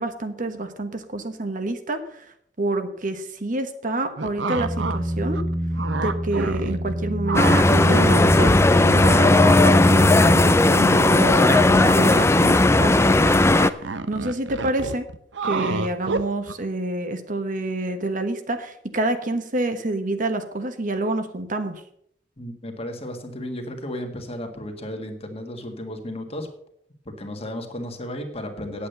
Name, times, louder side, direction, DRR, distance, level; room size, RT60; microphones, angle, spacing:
voice 1, 0.0-2.3 2.6-5.4 6.0-13.3 13.8-15.1 15.4-21.8, right 2 dB, 45° right, 8 dB, 1.2 m, -28 dB
sound 1, 4.2-5.0 5.3-6.9 7.2-8.4 8.7-16.5, right 4 dB, 85° right, 0.8 m, -29 dB
sound 2, 4.6-10.7, equal, 20° right, 0.7 m, -27 dB
sound 3, 7.3-13.7, left 2 dB, 15° left, 0.4 m, -16 dB
voice 2, 22.4-26.5 27.0-28.9, left 1 dB, 35° left, 5 dB, 1.7 m, -34 dB
9.7 x 8.5 x 6.7 m, 0.69 s
head